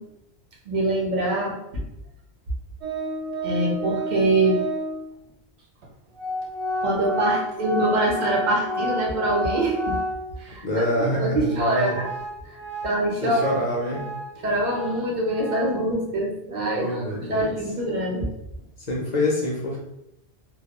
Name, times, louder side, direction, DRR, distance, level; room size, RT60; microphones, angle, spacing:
voice 1, 0.7-1.6 3.4-4.6 6.8-10.0 10.4-10.6 11.0-12.1 12.8-13.6 13.9-14.0 14.4-18.3, right 1 dB, 50° right, -3 dB, 0.7 m, -24 dB
Organ, 2.8-5.1 5.8-5.9 6.1-10.5 10.9-11.0 11.5-15.9, equal, 80° right, 0.9 m, -31 dB
voice 2, 10.6-12.0 13.2-14.1 16.7-17.5 18.9-19.8, left 1 dB, 55° left, -3 dB, 0.5 m, -26 dB
2.2 x 2.1 x 2.8 m, 0.84 s
omnidirectional pair, 1.1 m